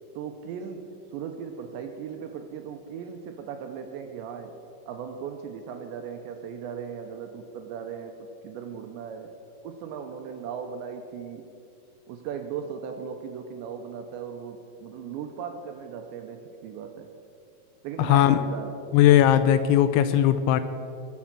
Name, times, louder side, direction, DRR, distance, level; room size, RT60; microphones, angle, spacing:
voice 1, 0.1-4.6 4.9-9.3 9.6-11.5 12.1-17.1 17.8-18.8, right 7 dB, 80° right, 6 dB, 2.7 m, -37 dB
voice 2, 18.0-18.4 18.9-20.6, left 11 dB, 85° left, 11 dB, 2.7 m, -18 dB
20.5 x 7.2 x 7.4 m, 2.5 s
omnidirectional pair, 5.8 m